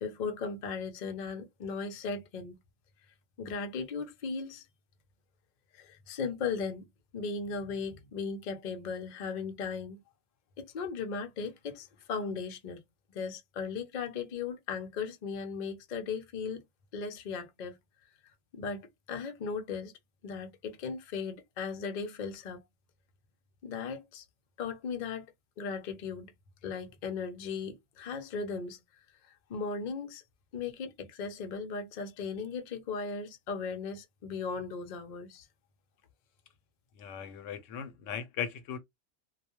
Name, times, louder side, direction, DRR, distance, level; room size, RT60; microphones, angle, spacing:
voice 1, 0.0-2.6 3.4-4.7 5.7-6.8 7.1-10.0 10.6-12.8 13.1-16.6 16.9-17.8 18.5-19.9 20.2-22.6 23.6-24.2 24.6-25.3 25.6-26.3 26.6-28.8 29.3-30.2 30.5-35.5, left 5 dB, 55° left, 0.5 m, -37 dB
voice 2, 37.0-38.8, left 8 dB, 80° left, 0.9 m, -38 dB
2.3 x 2.2 x 2.9 m
omnidirectional pair, 1.3 m